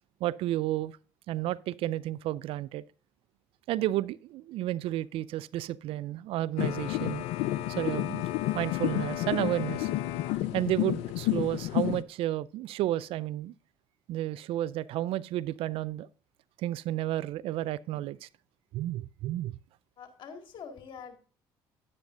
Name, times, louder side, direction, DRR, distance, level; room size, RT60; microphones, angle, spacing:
voice 1, 0.2-1.0 1.3-2.8 3.7-7.3 7.7-8.3 8.5-9.9 10.5-13.5 14.1-16.1 16.6-18.3 18.7-19.6, right 14 dB, 65° right, 0.4 m, -32 dB
sound 1, 6.6-12.0, left 15 dB, 75° left, 0.5 m, -30 dB
voice 2, 20.0-21.2, left 6 dB, 50° left, 2.0 m, -45 dB
10.0 x 9.7 x 2.6 m
hypercardioid pair, 60°, 10 cm